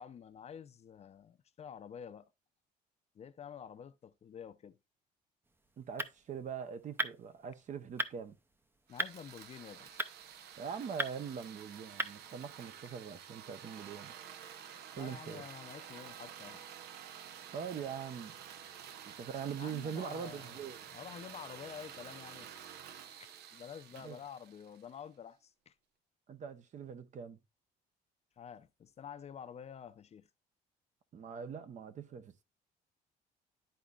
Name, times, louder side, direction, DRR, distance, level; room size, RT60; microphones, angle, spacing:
voice 1, 0.0-2.3 3.1-4.8 8.9-10.0 14.9-16.7 19.6-20.6 20.9-22.6 23.5-25.7 28.4-30.3, left 8 dB, 40° left, 0.6 m, -49 dB
sound 1, 5.4-12.7, right 2 dB, 15° right, 0.6 m, -42 dB
voice 2, 5.8-8.4 10.6-14.2 14.9-15.4 17.5-18.4 19.0-20.8 23.9-24.2 26.3-27.4 31.1-32.4, right 7 dB, 45° right, 0.9 m, -42 dB
sound 2, 8.9-25.1, right 9 dB, 75° right, 0.8 m, -51 dB
11.5 x 4.1 x 2.4 m
cardioid pair, 110°, 17 cm